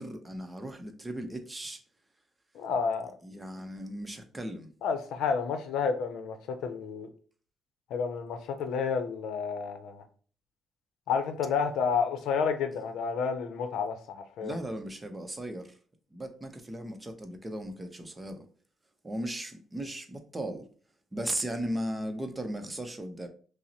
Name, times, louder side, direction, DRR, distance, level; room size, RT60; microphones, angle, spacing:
voice 1, 0.0-1.8 3.2-4.7 14.4-15.8 16.1-18.5 19.0-20.7 21.1-23.3, right 1 dB, 20° right, 0.7 m, -37 dB
voice 2, 2.5-3.1 4.8-7.1 7.9-10.0 11.1-14.6, left 6 dB, 85° left, 0.6 m, -30 dB
5.5 x 2.0 x 2.8 m
cardioid pair, 90°, 0 cm